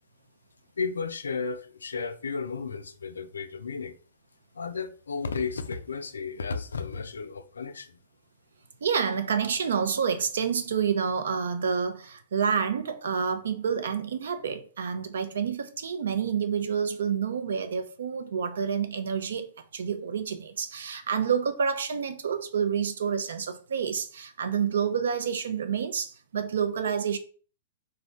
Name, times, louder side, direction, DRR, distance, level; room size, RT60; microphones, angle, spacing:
voice 1, 0.8-4.0 4.5-8.0, left 5 dB, 85° left, 0.3 m, -33 dB
voice 2, 8.8-27.2, right 7 dB, 75° right, 0.4 m, -28 dB
2.6 x 2.1 x 3.8 m
hypercardioid pair, 115°, 0 cm